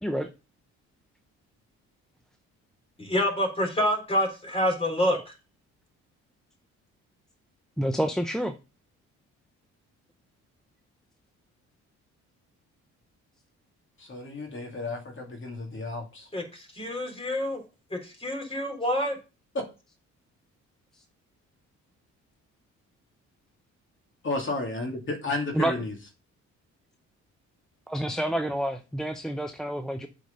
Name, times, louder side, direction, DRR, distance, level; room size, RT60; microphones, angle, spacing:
voice 1, 3.0-5.3 16.3-17.6 17.9-19.2, left 1 dB, 20° left, 3.7 m, -27 dB
voice 2, 7.8-8.6 25.5-25.7 27.9-30.1, right 1 dB, ahead, 0.6 m, -28 dB
voice 3, 14.0-16.3 19.5-19.7 24.2-25.9, left 2 dB, 40° left, 2.7 m, -32 dB
8.0 x 4.9 x 5.4 m
cardioid pair, 90°, 30 cm